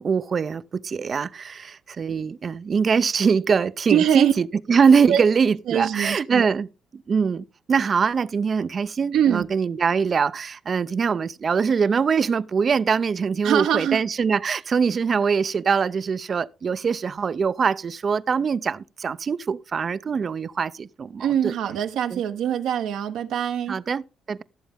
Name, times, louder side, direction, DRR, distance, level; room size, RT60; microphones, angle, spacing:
voice 1, 0.0-6.7 6.9-21.5 22.1-22.2 23.7-24.4, right 6 dB, 45° right, 0.5 m, -23 dB
voice 2, 3.9-4.3 5.1-5.2 5.7-6.5 9.1-9.5 13.4-14.0 21.2-23.8, right 9 dB, 75° right, 0.9 m, -23 dB
16.0 x 7.1 x 3.6 m
supercardioid pair, 75°, 0 cm